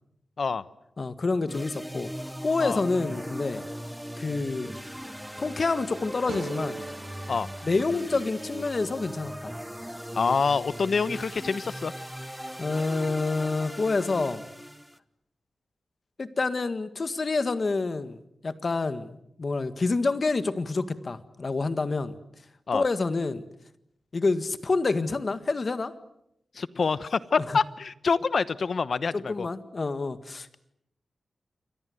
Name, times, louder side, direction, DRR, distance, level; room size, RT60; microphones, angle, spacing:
voice 1, 1.0-3.6 4.2-4.7 5.4-6.8 7.6-9.6 12.6-14.4 16.2-22.2 22.7-23.4 24.1-25.9 29.1-30.6, left 3 dB, 40° left, 11 dB, 1.7 m, -28 dB
sound 1, 1.5-15.0, equal, ahead, 1.0 m, -39 dB
sound 2, 6.3-9.5, right 4 dB, 60° right, 2.2 m, -42 dB
voice 2, 10.1-11.9 22.7-22.8 26.5-29.5, left 5 dB, 55° left, 16 dB, 1.0 m, -26 dB
28.5 x 23.5 x 7.9 m, 0.77 s
wide cardioid pair, 115°, 0 cm